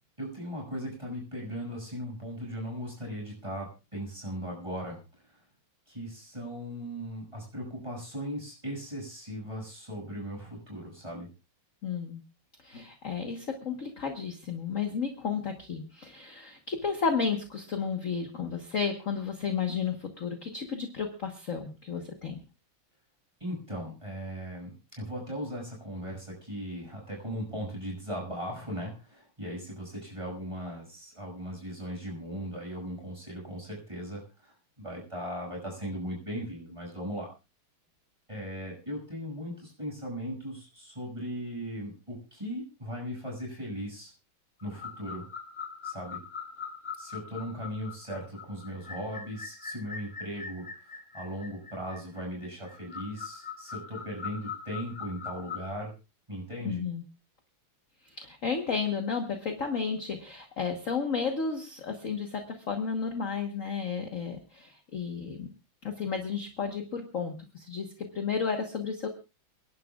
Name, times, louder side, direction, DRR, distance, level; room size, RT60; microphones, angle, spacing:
voice 1, 0.2-5.0 5.9-11.3 23.4-37.3 38.3-44.1 44.6-45.2 45.8-46.2 47.0-50.7 51.1-55.9 56.3-56.8, equal, 15° right, -1 dB, 6.2 m, -38 dB
voice 2, 11.8-12.2 12.6-22.4 56.6-57.0 58.1-65.5 65.8-69.1, left 5 dB, 45° left, 4 dB, 1.5 m, -32 dB
sound 1, 44.6-55.7, left 6 dB, 20° left, 2.0 m, -42 dB
29.5 x 11.0 x 2.4 m, 0.29 s
omnidirectional pair, 2.3 m